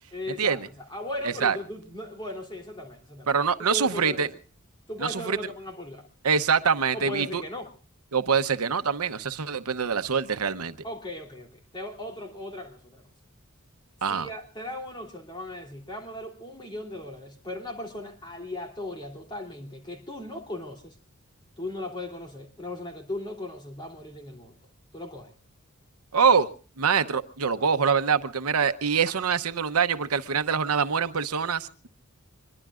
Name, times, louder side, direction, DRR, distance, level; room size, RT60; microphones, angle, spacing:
voice 1, 0.1-0.6 0.9-3.4 3.7-4.2 4.9-6.1 6.9-7.7 10.8-13.0 14.1-20.9 21.6-24.6 24.9-25.3 29.1-29.2, left 1 dB, 20° left, 3.2 m, -37 dB
voice 2, 1.2-1.6 3.3-4.3 5.0-5.4 6.2-7.4 8.1-10.7 14.0-14.3 26.1-26.5 26.8-31.9, right 6 dB, 90° right, 0.9 m, -24 dB
25.0 x 22.0 x 2.5 m
head